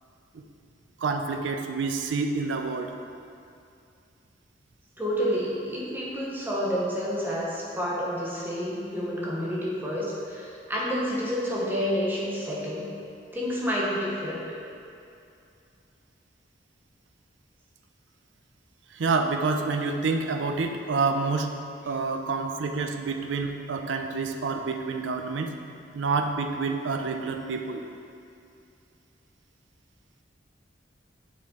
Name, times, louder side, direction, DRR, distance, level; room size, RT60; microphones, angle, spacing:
voice 1, 1.0-2.9 18.9-21.5 21.9-25.5 25.9-27.8, right 4 dB, 85° right, 5 dB, 0.5 m, -28 dB
voice 2, 5.0-12.9 13.3-14.5, equal, 10° right, -5 dB, 0.8 m, -29 dB
7.2 x 3.8 x 3.7 m, 2.5 s
head